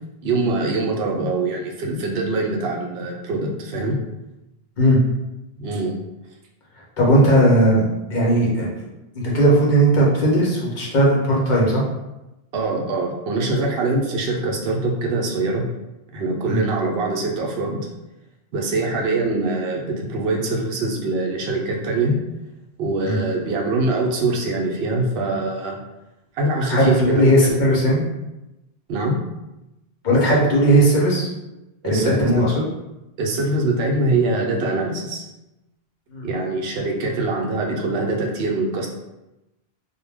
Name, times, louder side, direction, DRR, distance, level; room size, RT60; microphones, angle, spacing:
voice 1, 0.2-4.0 5.6-6.0 12.5-15.6 16.1-17.9 18.5-22.2 22.8-25.8 26.3-27.6 28.9-29.2 31.8-32.3 33.2-35.2 36.2-38.9, right 2 dB, 75° right, 0 dB, 0.8 m, -23 dB
voice 2, 7.0-7.8 8.1-8.7 9.2-11.9 16.5-16.6 23.1-23.2 26.7-28.0 30.0-31.3 31.8-32.5 36.1-36.3, right 1 dB, 55° left, -4 dB, 0.7 m, -17 dB
2.1 x 2.1 x 3.3 m, 0.96 s
omnidirectional pair, 1.1 m